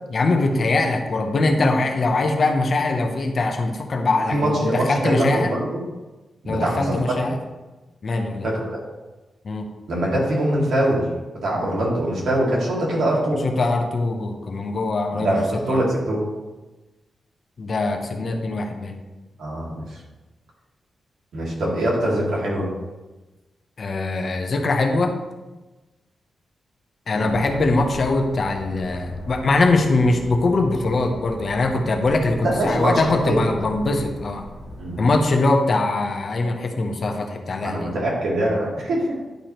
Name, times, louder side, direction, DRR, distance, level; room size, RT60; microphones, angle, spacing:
voice 1, 0.1-5.5 6.5-7.4 8.0-8.5 9.4-9.7 11.5-11.6 13.4-15.4 15.7-15.8 17.6-19.0 23.8-25.2 27.1-34.5 35.0-37.9, left 2 dB, 40° left, 4 dB, 0.8 m, -22 dB
voice 2, 4.3-5.8 6.4-6.9 8.4-8.8 9.9-11.0 11.4-13.4 15.1-16.2 19.4-20.0 21.3-22.7 27.1-27.3 32.4-33.4 34.8-34.9 37.6-39.1, right 1 dB, 85° right, -4 dB, 2.2 m, -23 dB
sound 1, 27.2-35.2, right 1 dB, 60° right, 2.3 m, -38 dB
10.5 x 4.7 x 3.0 m, 1.1 s
wide cardioid pair, 170°, 0 cm